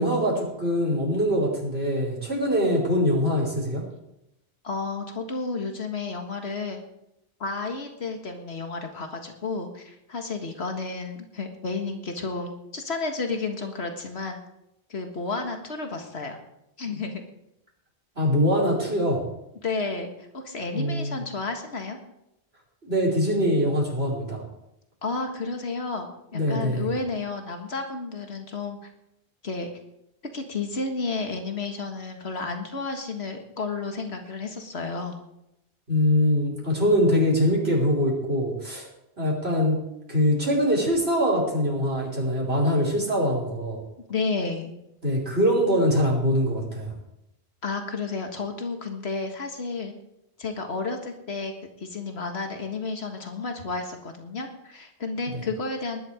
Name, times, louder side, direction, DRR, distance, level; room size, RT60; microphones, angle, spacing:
voice 1, 0.0-3.8 18.2-19.2 20.7-21.2 22.8-24.4 26.3-26.9 35.9-38.9 39.2-39.8 40.1-43.8 45.0-46.9 55.3-55.4, equal, 75° right, -3 dB, 5.6 m, -23 dB
voice 2, 4.6-6.8 7.4-14.4 14.9-16.4 16.8-17.2 19.6-22.0 25.0-28.9 29.4-29.7 30.3-35.2 44.1-44.7 47.6-49.9 50.4-51.5 51.8-56.0, left 3 dB, 85° left, 4 dB, 2.0 m, -31 dB
19.5 x 11.0 x 5.0 m, 0.85 s
omnidirectional pair, 1.1 m